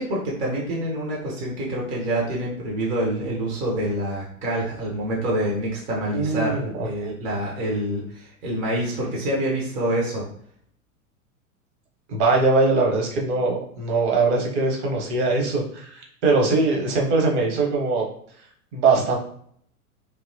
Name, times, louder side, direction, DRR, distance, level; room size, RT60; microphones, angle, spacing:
voice 1, 0.0-10.3, right 1 dB, 15° right, -3 dB, 0.4 m, -26 dB
voice 2, 6.1-7.1 12.1-18.0 18.7-19.2, right 3 dB, 50° right, 0 dB, 0.9 m, -22 dB
2.7 x 2.1 x 2.5 m, 0.63 s
figure-of-eight pair, 90°, 44 cm